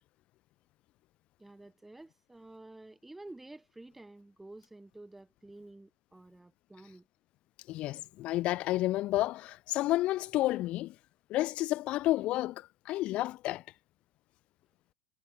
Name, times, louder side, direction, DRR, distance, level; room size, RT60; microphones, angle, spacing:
voice 1, 1.4-7.1, right 2 dB, 5° right, 3.1 m, -51 dB
voice 2, 7.7-10.9 11.3-13.6, left 16 dB, 40° left, 1.1 m, -31 dB
supercardioid pair, 125°, 3 cm